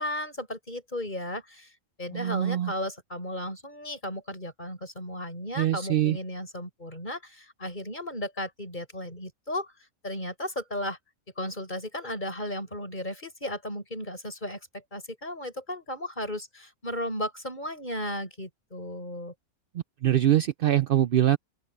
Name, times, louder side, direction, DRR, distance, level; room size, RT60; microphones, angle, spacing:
voice 1, 0.0-1.7 2.0-11.0 11.4-19.3, left 1 dB, 30° left, 7.2 m, -35 dB
voice 2, 2.1-2.7 5.6-6.2 20.0-21.4, right 12 dB, 85° right, 0.5 m, -23 dB
open air
omnidirectional pair, 1.5 m